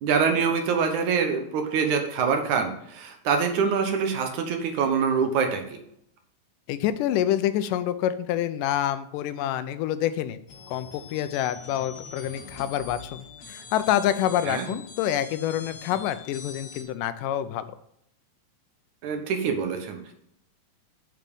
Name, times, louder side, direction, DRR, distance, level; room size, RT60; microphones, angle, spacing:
voice 1, 0.0-5.8 14.5-14.7 19.0-20.1, right 6 dB, 70° right, 5 dB, 2.5 m, -25 dB
voice 2, 6.7-10.4 10.7-17.8, left 11 dB, 85° left, 13 dB, 2.3 m, -27 dB
sound 1, 10.5-16.8, left 5 dB, 60° left, 2.6 m, -43 dB
7.5 x 7.2 x 5.4 m, 0.73 s
omnidirectional pair, 3.7 m